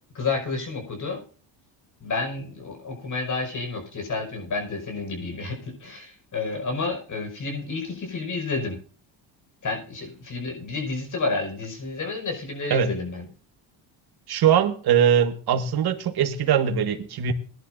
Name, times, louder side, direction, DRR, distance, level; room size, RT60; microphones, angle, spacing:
voice 1, 0.1-1.2 2.0-8.8 9.6-13.3, left 3 dB, 35° left, 5.6 m, -30 dB
voice 2, 14.3-17.3, right 8 dB, 50° right, 1.8 m, -21 dB
21.5 x 11.0 x 2.6 m
cardioid pair, 115°, 49 cm